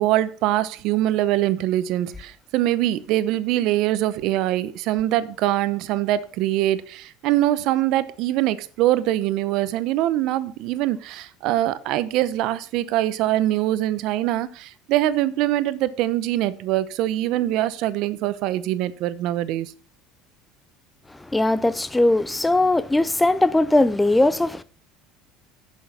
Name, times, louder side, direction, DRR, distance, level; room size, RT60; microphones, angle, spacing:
voice 1, 0.0-19.7, right 14 dB, 50° right, 0.7 m, -23 dB
voice 2, 21.2-24.6, left 2 dB, 5° left, 0.4 m, -19 dB
10.5 x 6.3 x 5.8 m
cardioid pair, 175°, 0 cm